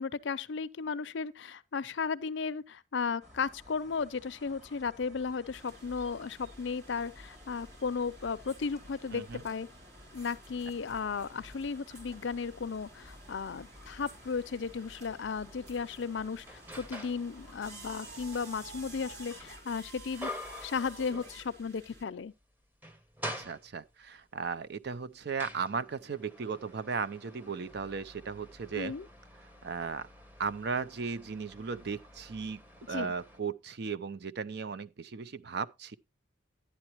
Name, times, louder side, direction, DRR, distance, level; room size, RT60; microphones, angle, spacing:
voice 1, 0.0-9.7 10.1-20.3 20.6-22.3 28.8-29.1 32.9-33.1, left 5 dB, 65° left, 0.5 m, -35 dB
sound 1, 3.2-19.6, equal, 40° right, 2.3 m, -56 dB
sound 2, 5.5-22.0, right 1 dB, 75° right, 3.0 m, -52 dB
voice 2, 9.1-9.4 23.4-28.9 29.6-30.1 30.4-32.6 32.9-36.0, right 5 dB, 55° right, 0.5 m, -36 dB
sound 3, 15.0-15.1 15.7-17.3 17.7-21.8 22.1-22.2 22.6-24.1 24.8-33.4, left 1 dB, 10° right, 0.8 m, -47 dB
11.5 x 9.7 x 2.9 m
head